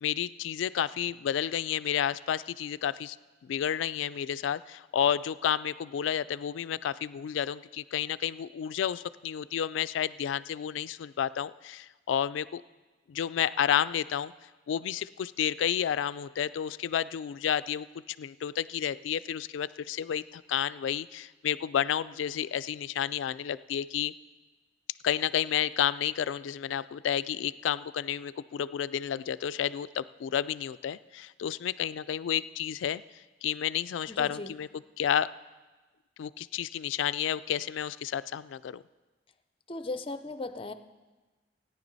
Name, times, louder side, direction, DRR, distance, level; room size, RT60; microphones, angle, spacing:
voice 1, 0.0-3.2 3.4-12.6 13.1-14.3 14.7-24.1 25.0-33.0 33.4-34.7 35.0-35.3 36.2-38.8, left 9 dB, 90° left, 17 dB, 0.3 m, -31 dB
voice 2, 34.1-34.5 39.7-40.7, left 2 dB, 30° left, 10 dB, 0.6 m, -37 dB
17.0 x 9.9 x 4.0 m, 1.2 s
head